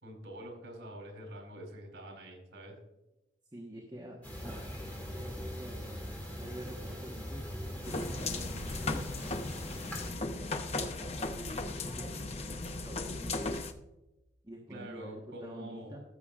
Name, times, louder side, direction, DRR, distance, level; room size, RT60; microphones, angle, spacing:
voice 1, 0.0-2.8 14.7-16.0, right 1 dB, 80° right, 3 dB, 3.4 m, -46 dB
voice 2, 3.5-4.7 5.1-7.5 7.8-13.6 14.4-16.0, equal, 20° right, -1 dB, 1.2 m, -47 dB
sound 1, 4.2-10.1, equal, 10° left, 2.3 m, -41 dB
sound 2, 7.8-13.7, left 3 dB, 35° left, 0.6 m, -37 dB
15.5 x 7.0 x 2.4 m, 0.95 s
head